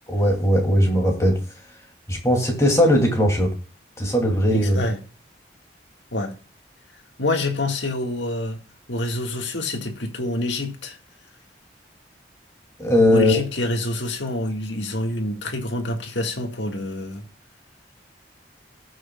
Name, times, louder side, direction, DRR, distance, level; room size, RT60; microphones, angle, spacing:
voice 1, 0.1-1.4 2.1-3.5 4.0-4.8 12.8-13.4, equal, 15° left, 2.9 m, -19 dB
voice 2, 4.5-5.0 6.1-6.3 7.2-8.6 8.9-11.0 13.1-17.2, left 1 dB, 80° left, 1.9 m, -27 dB
18.5 x 6.4 x 2.4 m
head